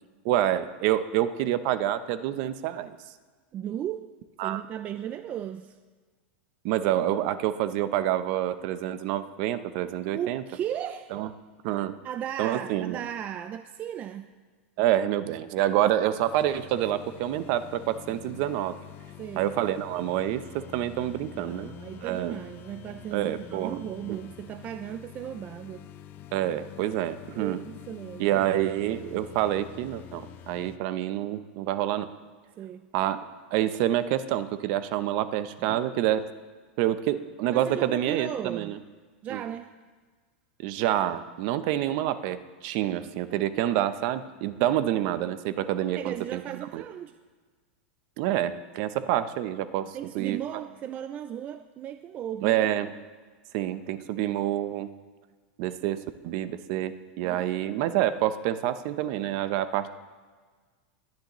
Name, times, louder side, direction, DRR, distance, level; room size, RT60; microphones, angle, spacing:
voice 1, 0.2-3.0 4.4-4.6 6.6-10.4 11.1-11.3 11.6-11.9 12.4-13.0 14.8-18.8 19.4-21.8 22.0-22.4 23.1-23.8 24.1-24.2 26.3-27.6 28.2-32.1 32.9-33.2 33.5-36.3 36.8-38.8 39.3-39.4 40.6-46.4 46.7-46.8 48.2-50.4 52.4-52.9 53.5-54.9 55.6-59.9, right 12 dB, 50° right, 13 dB, 0.7 m, -27 dB
voice 2, 3.5-4.1 4.4-5.8 10.1-11.2 11.6-14.3 19.2-19.5 21.3-25.9 27.4-28.4 32.6-32.9 35.7-35.8 37.5-38.8 39.2-39.7 45.8-47.2 49.9-52.6 57.2-57.5, right 10 dB, 25° right, 11 dB, 0.3 m, -36 dB
sound 1, 16.2-30.8, left 12 dB, 35° left, 0.6 m, -46 dB
20.0 x 10.5 x 3.1 m, 1.5 s
supercardioid pair, 150°, 6 cm